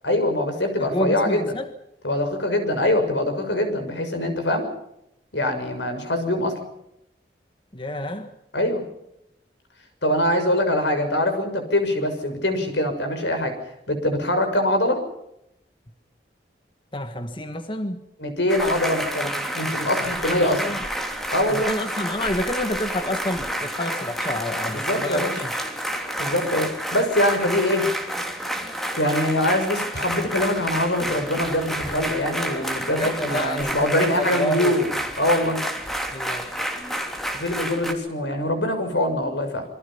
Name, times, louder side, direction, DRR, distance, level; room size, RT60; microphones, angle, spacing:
voice 1, 0.0-1.4 2.0-4.7 5.3-6.6 8.5-8.8 10.0-13.5 13.9-15.0 18.2-20.7 21.3-21.7 24.7-25.3 26.2-27.9 29.0-34.9 35.2-35.6 37.3-39.6, left 1 dB, 85° left, 6.5 m, -23 dB
voice 2, 0.8-1.7 7.7-8.3 16.9-18.0 20.0-20.8 21.5-25.6 33.0-33.8 34.1-34.8 36.1-36.5, left 1 dB, 30° left, 1.5 m, -29 dB
sound 1, 18.5-37.9, right 1 dB, ahead, 3.0 m, -29 dB
27.0 x 23.0 x 5.7 m
head